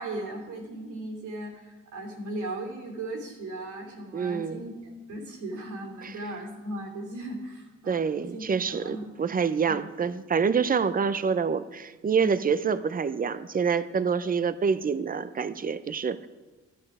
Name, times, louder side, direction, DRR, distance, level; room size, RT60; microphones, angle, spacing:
voice 1, 0.0-8.0 8.3-9.1 9.6-9.8 12.2-12.4, right 1 dB, 85° right, 1 dB, 2.9 m, -37 dB
voice 2, 4.1-4.6 7.9-16.3, right 6 dB, 30° right, 14 dB, 0.6 m, -27 dB
12.0 x 11.0 x 4.9 m, 1.3 s
cardioid pair, 90°, 30 cm